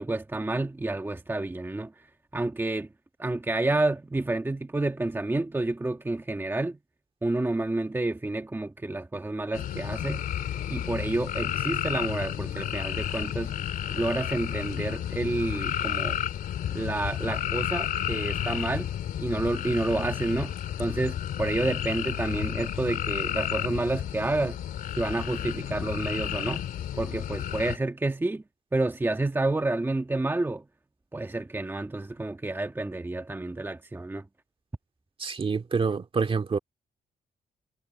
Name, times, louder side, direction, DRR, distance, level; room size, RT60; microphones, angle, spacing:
voice 1, 0.0-1.9 2.3-2.9 3.2-6.8 7.2-10.2 10.7-13.5 13.9-16.2 16.7-18.9 19.2-24.6 25.0-26.6 27.0-28.4 28.7-30.6 31.1-34.2, right 2 dB, 15° right, 1.5 m, -29 dB
sound 1, 9.5-27.8, left 10 dB, 90° left, 3.0 m, -32 dB
voice 2, 35.2-36.6, right 5 dB, 40° right, 2.2 m, -27 dB
cardioid pair, 100°, 14 cm